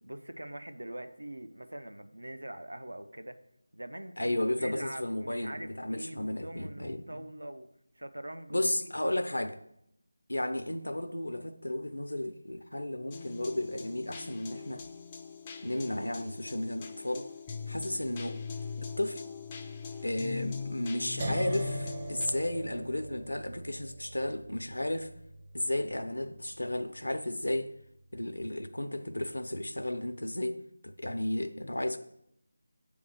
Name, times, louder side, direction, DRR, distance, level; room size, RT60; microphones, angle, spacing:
voice 1, 0.0-3.4 3.7-7.7 8.0-9.2, right 1 dB, 70° right, 0.7 m, -43 dB
voice 2, 4.2-7.2 8.5-9.6 10.3-14.8 15.6-17.3 17.7-18.4 18.8-19.2 20.0-25.1 25.5-27.7 28.1-32.0, left 1 dB, 70° left, 0.6 m, -33 dB
sound 1, 13.1-22.3, left 5 dB, 15° left, 0.4 m, -41 dB
sound 2, 21.2-27.1, right 2 dB, 30° right, 0.7 m, -41 dB
7.7 x 3.5 x 6.4 m
figure-of-eight pair, 165°, 0 cm